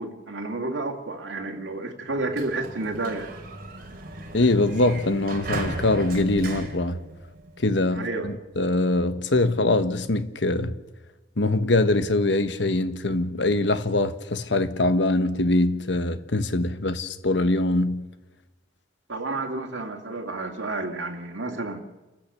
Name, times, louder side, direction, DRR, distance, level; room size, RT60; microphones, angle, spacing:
voice 1, 0.0-3.3 7.9-8.3 19.1-21.9, right 2 dB, 90° right, 2.3 m, -31 dB
Sliding door, 2.1-7.7, right 2 dB, 50° right, 3.4 m, -36 dB
voice 2, 4.3-7.0 7.6-10.8 11.4-18.0, left 2 dB, 70° left, 1.3 m, -23 dB
28.5 x 15.0 x 6.8 m
head